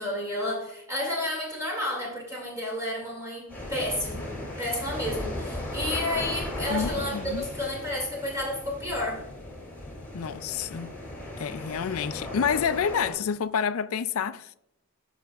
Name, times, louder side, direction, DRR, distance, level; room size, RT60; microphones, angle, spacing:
voice 1, 0.0-4.3 4.6-9.2, left 1 dB, 15° right, 2.2 m, -31 dB
sound 1, 3.5-13.1, left 1 dB, 10° left, 2.4 m, -36 dB
voice 2, 6.7-7.5 10.1-11.0 11.4-14.5, left 7 dB, 75° left, 0.4 m, -28 dB
15.0 x 5.7 x 2.4 m
head